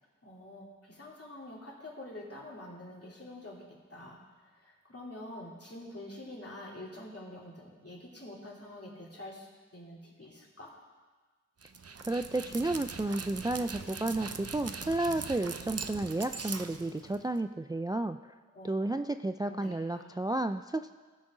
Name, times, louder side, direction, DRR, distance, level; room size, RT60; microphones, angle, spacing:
voice 1, 0.2-3.6 3.9-9.5 9.7-10.7 18.5-19.0 19.4-20.1, left 1 dB, 55° left, -4 dB, 2.9 m, -46 dB
Dog, 11.6-17.4, right 5 dB, 55° right, 0.7 m, -41 dB
voice 2, 12.1-18.3 18.6-20.9, right 2 dB, 15° right, 9 dB, 0.3 m, -32 dB
18.0 x 6.2 x 4.9 m, 1.4 s
wide cardioid pair, 55°, 29 cm